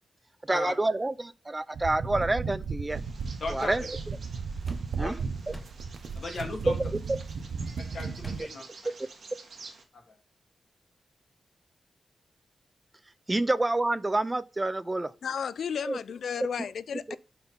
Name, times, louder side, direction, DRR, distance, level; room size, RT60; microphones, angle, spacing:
voice 1, 0.5-3.0 3.5-3.8 5.0-5.1 5.5-5.6 6.7-6.8 7.1-7.2 13.3-15.1 15.8-16.0 16.9-17.2, right 2 dB, 15° right, 0.4 m, -28 dB
sound 1, 1.7-8.4, right 5 dB, 80° right, 0.8 m, -35 dB
Bird vocalization bird call bird song, 2.9-9.8, right 4 dB, 55° right, 1.4 m, -50 dB
voice 2, 3.4-3.7 5.0-5.2 6.1-6.8 7.9-8.9 9.9-10.1, left 3 dB, 55° left, 1.5 m, -37 dB
sound 2, 4.7-5.0 5.5-6.0 6.4-6.8 8.2-8.7, left 1 dB, 10° left, 0.9 m, -47 dB
voice 3, 15.2-17.2, left 7 dB, 80° left, 0.3 m, -33 dB
5.7 x 4.5 x 5.4 m
wide cardioid pair, 170°, 0 cm